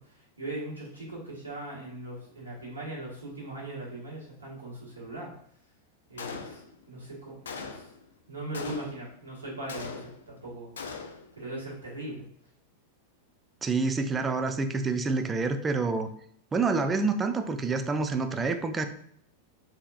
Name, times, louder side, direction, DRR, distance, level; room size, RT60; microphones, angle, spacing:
voice 1, 0.1-5.3 6.1-6.6 6.9-7.4 7.6-7.9 8.3-10.7 11.4-12.2, right 1 dB, 80° right, -6 dB, 1.4 m, -39 dB
Gunshot gunfire, 6.2-6.9 7.5-8.0 8.5-9.2 9.7-10.4 10.8-11.3, left 5 dB, 65° left, 0.4 m, -40 dB
voice 2, 13.6-16.1 16.5-18.9, right 4 dB, 15° right, 8 dB, 0.3 m, -27 dB
3.7 x 2.8 x 2.3 m, 0.66 s
figure-of-eight pair, 90°, 0 cm